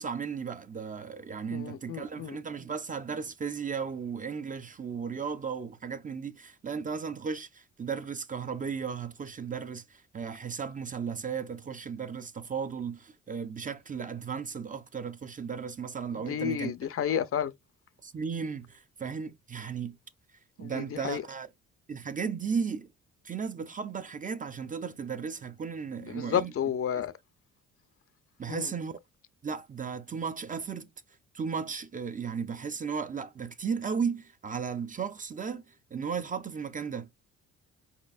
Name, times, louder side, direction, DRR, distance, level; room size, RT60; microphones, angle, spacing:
voice 1, 0.0-16.7 18.0-20.0 20.6-21.5 21.9-22.9 23.2-26.5 28.4-29.0 29.4-30.9 31.3-35.6 35.9-37.1, right 6 dB, 25° right, 0.5 m, -35 dB
voice 2, 1.5-2.4 16.3-17.5 20.6-21.2 26.1-27.1 28.5-28.7, left 9 dB, 50° left, 0.5 m, -31 dB
4.6 x 4.3 x 2.4 m
cardioid pair, 90°, 30 cm